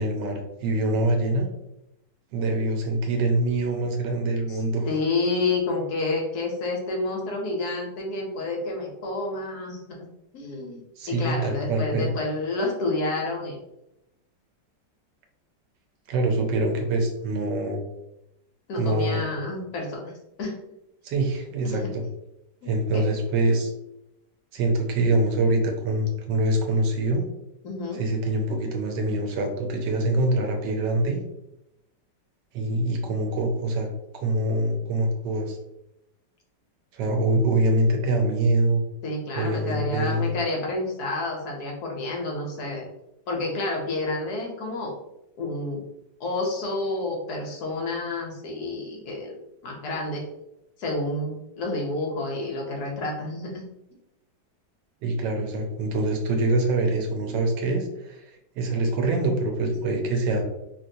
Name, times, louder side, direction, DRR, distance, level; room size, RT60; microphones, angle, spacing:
voice 1, 0.0-1.5 2.3-4.9 11.0-12.1 16.1-17.8 18.8-19.3 21.0-22.0 22.6-23.7 24.5-27.2 27.9-31.2 32.5-33.9 34.1-35.6 36.9-38.8 39.3-40.3 55.0-60.4, right 2 dB, 80° right, 3 dB, 1.3 m, -24 dB
voice 2, 4.9-9.8 10.3-10.8 11.1-13.6 18.7-20.1 20.4-20.6 21.6-21.9 22.6-23.0 27.6-28.0 39.0-42.9 43.3-44.9 45.4-45.8 46.2-49.4 49.6-50.2 50.8-53.7, left 2 dB, 65° left, 0 dB, 1.1 m, -29 dB
2.9 x 2.9 x 2.6 m, 0.85 s
omnidirectional pair, 1.9 m